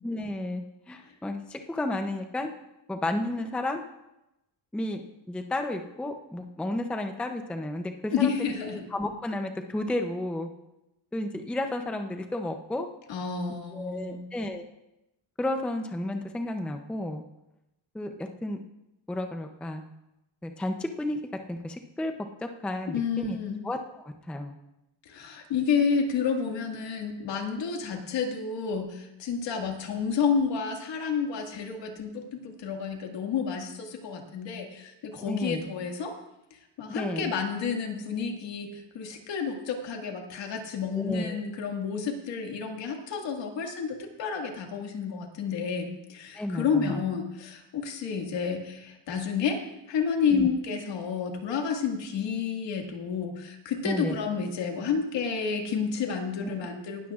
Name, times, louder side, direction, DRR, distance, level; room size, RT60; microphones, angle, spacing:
voice 1, 0.0-2.5 2.9-3.8 4.7-5.0 5.3-10.5 11.1-12.9 13.7-14.7 15.4-17.2 17.9-18.6 19.1-19.8 20.4-21.2 21.5-22.1 22.4-23.4 23.6-24.5 35.2-35.7 36.9-37.3 40.9-41.4 46.3-47.0 50.3-50.5 53.8-54.2 56.4-56.5, left 1 dB, 5° left, 5 dB, 0.5 m, -32 dB
voice 2, 8.1-8.8 13.1-14.2 22.9-23.6 25.1-36.2 36.5-49.6 49.9-57.1, left 6 dB, 65° left, 3 dB, 2.0 m, -30 dB
19.0 x 12.5 x 2.4 m, 0.91 s
cardioid pair, 150°, 46 cm